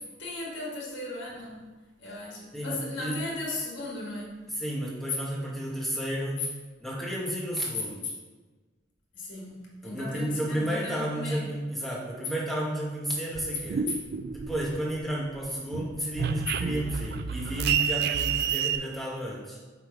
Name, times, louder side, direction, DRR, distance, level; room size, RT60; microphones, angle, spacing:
voice 1, 0.0-1.7 2.0-4.4 6.4-6.5 9.1-11.5, left 2 dB, 75° left, -3 dB, 1.7 m, -37 dB
voice 2, 2.5-3.1 4.6-6.4 6.8-8.0 9.8-13.8 14.3-19.6, right 1 dB, ahead, -5 dB, 1.5 m, -32 dB
sound 1, 13.3-15.0 15.4-18.8, right 7 dB, 55° right, 0.3 m, -29 dB
7.5 x 3.6 x 4.9 m, 1.3 s
head